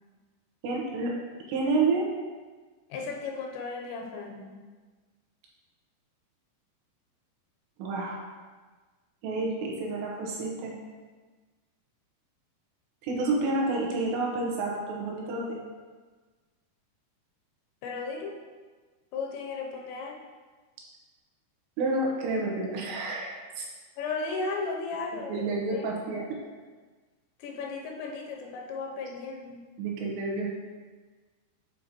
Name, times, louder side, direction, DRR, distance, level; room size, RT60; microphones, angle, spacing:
voice 1, 0.6-1.1 1.5-2.1 7.8-8.2 9.2-10.8 13.0-15.6 21.8-23.3 23.6-23.7 25.1-26.2 29.8-30.5, right 3 dB, 80° right, -2 dB, 3.1 m, -29 dB
voice 2, 2.9-4.6 17.8-18.4 19.1-20.2 24.0-26.0 27.4-29.6, left 4 dB, 85° left, 1 dB, 2.9 m, -35 dB
8.3 x 5.2 x 2.9 m, 1.4 s
omnidirectional pair, 5.2 m